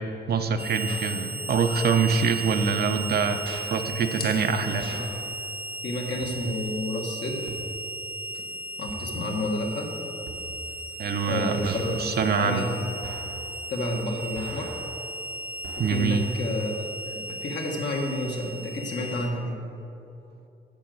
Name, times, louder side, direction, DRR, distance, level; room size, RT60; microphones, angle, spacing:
voice 1, 0.3-3.4 3.7-4.9 11.0-12.7 15.8-16.2, right 5 dB, 60° right, 7 dB, 0.8 m, -25 dB
Harmonica, 0.6-19.3, right 2 dB, 10° right, 0.4 m, -36 dB
sound 1, 0.9-1.1 2.1-2.3 3.4-3.6 4.8-5.2 6.2-6.6 7.5-7.9 8.9-9.3 10.3-10.7 11.6-12.0 13.0-13.4 14.4-14.9 15.6-16.2, right 3 dB, 85° right, 1.4 m, -41 dB
sound 2, 2.7-10.3, left 4 dB, 55° left, 1.6 m, -50 dB
voice 2, 5.8-7.6 8.8-9.9 11.2-12.1 12.4-12.7 13.7-14.7 15.8-19.6, left 1 dB, 75° left, 0 dB, 1.7 m, -30 dB
10.5 x 5.2 x 7.8 m, 2.8 s
cardioid pair, 120°, 19 cm